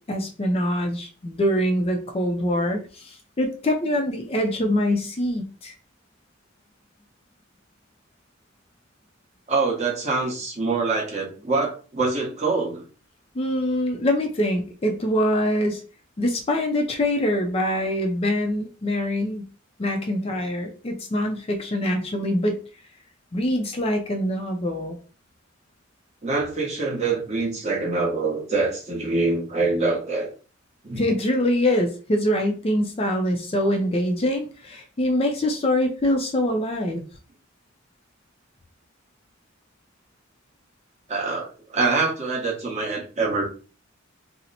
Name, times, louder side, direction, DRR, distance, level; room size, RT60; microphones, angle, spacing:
voice 1, 0.1-5.7 13.3-15.8 16.2-19.5 19.8-22.6 23.3-25.0 31.0-37.0, left 1 dB, 30° left, 3 dB, 0.4 m, -24 dB
voice 2, 9.5-12.8 26.2-30.3 30.8-31.0 41.1-43.4, right 3 dB, 30° right, -1 dB, 0.9 m, -25 dB
2.8 x 2.0 x 3.9 m, 0.36 s
head